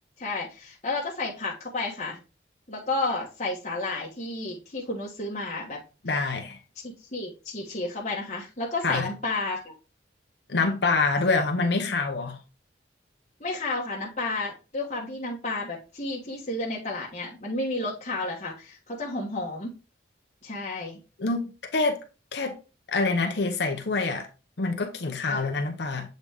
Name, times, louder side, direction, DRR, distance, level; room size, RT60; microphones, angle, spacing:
voice 1, 0.2-2.2 2.7-5.8 6.1-6.2 6.8-9.7 13.4-19.7 20.4-21.0 25.3-25.5, left 2 dB, 35° left, 1.4 m, -32 dB
voice 2, 6.0-6.6 8.8-9.1 10.5-12.4 21.2-22.0 22.3-22.6 22.9-24.3 24.6-26.1, left 3 dB, 65° left, 0.8 m, -26 dB
7.3 x 4.0 x 3.5 m
head